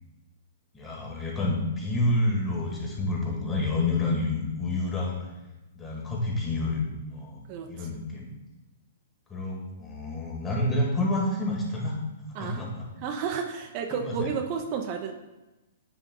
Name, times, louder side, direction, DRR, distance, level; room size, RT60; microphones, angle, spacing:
voice 1, 0.7-5.3 5.8-6.8 7.1-7.4 7.7-8.3 9.3-12.0 12.4-12.8 13.9-14.3, left 2 dB, 15° left, -3 dB, 1.8 m, -28 dB
voice 2, 7.5-7.9 12.4-12.6 13.0-15.1, right 6 dB, 40° right, 3 dB, 0.6 m, -31 dB
9.1 x 3.5 x 3.8 m, 1.0 s
hypercardioid pair, 130°, 0 cm